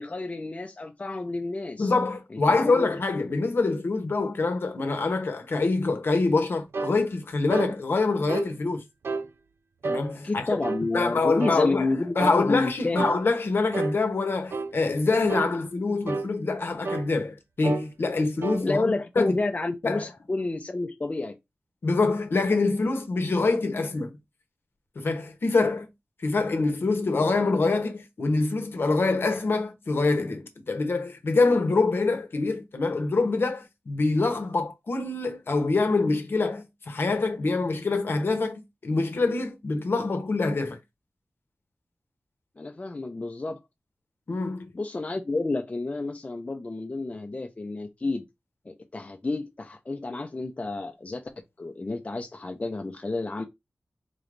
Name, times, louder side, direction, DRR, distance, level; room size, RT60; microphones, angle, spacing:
voice 1, 0.0-1.9 2.3-2.9 10.2-13.1 18.6-21.4 42.6-43.6 44.7-48.2 48.7-51.2 51.6-53.4, left 2 dB, 35° left, 0.5 m, -30 dB
voice 2, 1.8-8.8 9.8-10.6 10.9-19.3 19.8-20.0 21.8-24.2 25.0-25.9 26.2-40.8 44.3-44.7, left 3 dB, 70° left, 0.9 m, -25 dB
sound 1, 6.7-7.0 7.5-7.7 8.3-8.5 9.0-9.3 9.8-10.1 10.6-10.9 11.4-11.6 12.2-12.4 13.0-13.2 13.7-14.0 14.5-14.7 15.3-15.5 16.1-16.3 16.8-17.1 17.6-17.9 18.4-18.6, right 3 dB, 90° right, 0.4 m, -30 dB
4.0 x 3.3 x 2.5 m
wide cardioid pair, 100°, 4 cm